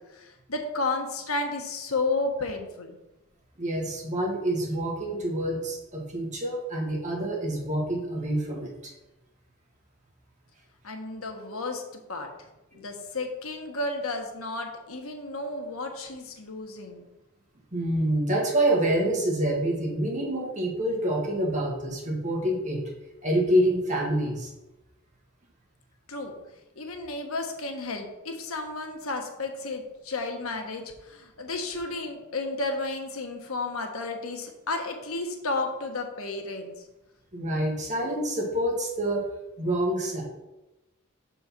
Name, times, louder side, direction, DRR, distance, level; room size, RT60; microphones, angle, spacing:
voice 1, 0.1-2.9 10.8-12.3 12.7-17.1 26.1-26.3 26.8-36.8, left 3 dB, 85° left, 4 dB, 1.2 m, -32 dB
voice 2, 3.6-8.9 12.7-12.8 17.7-22.8 23.2-24.5 37.3-39.3 39.6-40.2, right 1 dB, 35° right, -2 dB, 1.9 m, -27 dB
6.6 x 4.5 x 5.8 m, 1.0 s
head